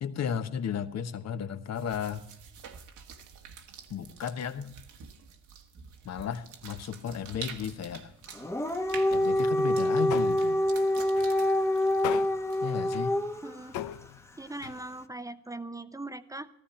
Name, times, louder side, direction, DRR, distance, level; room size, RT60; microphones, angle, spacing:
voice 1, 0.0-2.2 3.9-4.7 6.0-8.1 9.1-10.6 12.6-13.2, left 7 dB, 60° left, 10 dB, 1.2 m, -34 dB
sound 1, 1.7-12.9, right 6 dB, 75° right, 1.7 m, -48 dB
sound 2, 7.6-8.6 8.9-15.0, left 12 dB, 80° left, 0.7 m, -42 dB
Dog, 8.3-13.5, left 1 dB, 10° left, 0.9 m, -26 dB
voice 2, 13.4-13.8 14.4-16.5, right 2 dB, 10° right, 12 dB, 0.7 m, -40 dB
14.0 x 14.0 x 4.3 m, 0.73 s
cardioid pair, 90°, 30 cm